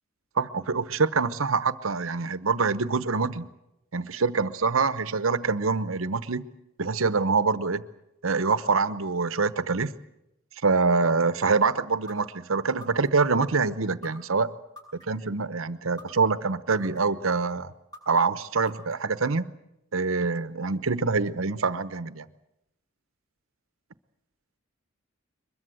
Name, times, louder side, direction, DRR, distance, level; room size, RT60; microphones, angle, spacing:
voice 1, 0.4-3.5 3.9-6.4 6.8-7.9 8.2-9.9 10.6-14.5 14.9-17.7 18.1-19.5 19.9-22.3, right 4 dB, 80° right, 14 dB, 1.0 m, -25 dB
sound 1, 12.1-12.2 12.8-13.3 14.0-14.1 14.8-15.3 16.0-16.1 16.7-17.2 17.9-18.0 18.7-19.2, left 1 dB, 20° left, 7.3 m, -44 dB
23.0 x 21.5 x 7.9 m, 0.86 s
head